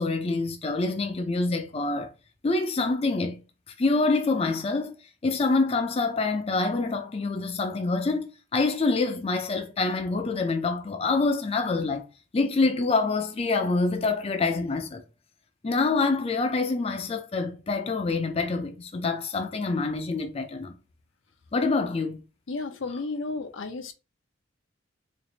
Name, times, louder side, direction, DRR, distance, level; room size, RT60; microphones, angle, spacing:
voice 1, 0.0-2.1 2.4-3.4 3.8-4.9 5.2-12.1 12.3-15.0 15.6-20.7 21.5-22.2, left 3 dB, 30° left, 0.4 m, -26 dB
voice 2, 22.5-23.9, left 3 dB, 80° left, 0.7 m, -33 dB
3.2 x 2.5 x 3.9 m
head